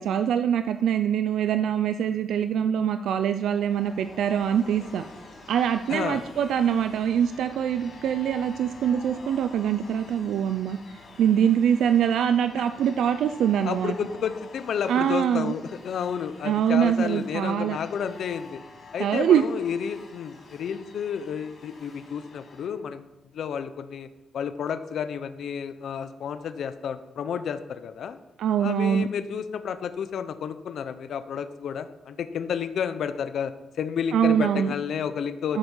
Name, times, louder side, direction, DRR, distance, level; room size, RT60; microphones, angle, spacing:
voice 1, 0.0-5.0 5.5-10.8 11.2-13.9 14.9-15.5 16.4-17.8 19.0-19.4 28.4-29.1 34.1-34.7 35.5-35.6, right 9 dB, 80° right, 10 dB, 0.5 m, -24 dB
sound 1, 3.2-22.7, left 3 dB, 40° left, 3.1 m, -47 dB
voice 2, 5.9-6.2 12.6-12.7 13.6-18.6 18.9-23.1 23.3-24.1 24.3-28.2 28.6-35.6, left 7 dB, 60° left, 10 dB, 0.6 m, -31 dB
13.0 x 8.0 x 5.5 m, 0.98 s
wide cardioid pair, 170°, 0 cm